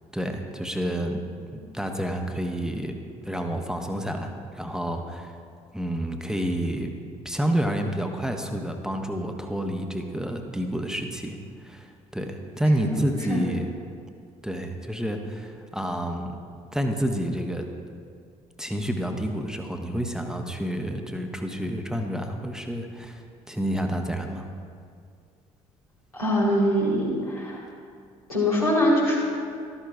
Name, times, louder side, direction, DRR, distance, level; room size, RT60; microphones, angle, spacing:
voice 1, 0.1-1.2 1.5-3.0 3.2-5.3 5.7-6.9 7.2-13.7 14.4-16.4 16.7-17.7 18.6-24.5, equal, 5° right, 4 dB, 0.9 m, -29 dB
voice 2, 26.1-27.6 28.3-29.2, equal, 90° left, -6 dB, 2.0 m, -23 dB
13.0 x 12.5 x 2.3 m, 2.2 s
figure-of-eight pair, 50°, 18 cm